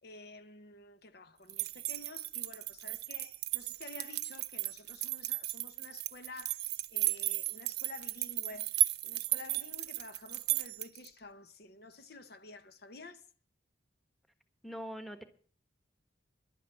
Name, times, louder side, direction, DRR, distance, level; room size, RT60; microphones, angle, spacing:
voice 1, 0.0-6.6 6.9-8.7 9.0-13.2, left 3 dB, 55° left, 0.9 m, -51 dB
sound 1, 1.5-11.1, right 18 dB, 60° right, 0.6 m, -35 dB
voice 2, 14.6-15.2, equal, ahead, 1.3 m, -42 dB
11.5 x 9.2 x 7.6 m
head